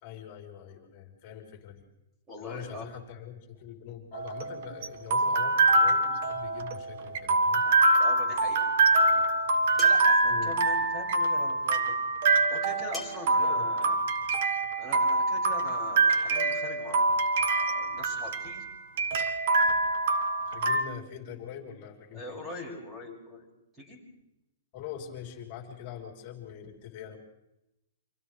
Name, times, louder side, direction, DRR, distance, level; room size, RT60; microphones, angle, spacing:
voice 1, 0.0-1.8 2.4-7.6 10.3-10.6 13.4-13.8 20.5-22.4 24.7-27.2, left 9 dB, 30° left, 2 dB, 3.5 m, -43 dB
voice 2, 2.3-2.9 8.0-9.2 9.8-11.9 12.5-14.0 14.8-18.6 22.1-23.5 23.7-24.0, left 1 dB, 10° right, -1 dB, 5.8 m, -42 dB
sound 1, 4.1-20.8, right 2 dB, 45° right, 1.4 m, -25 dB
sound 2, 9.8-10.2 12.9-13.3, left 3 dB, 5° left, 1.6 m, -40 dB
30.0 x 26.5 x 3.3 m, 0.88 s
hypercardioid pair, 175°, 0 cm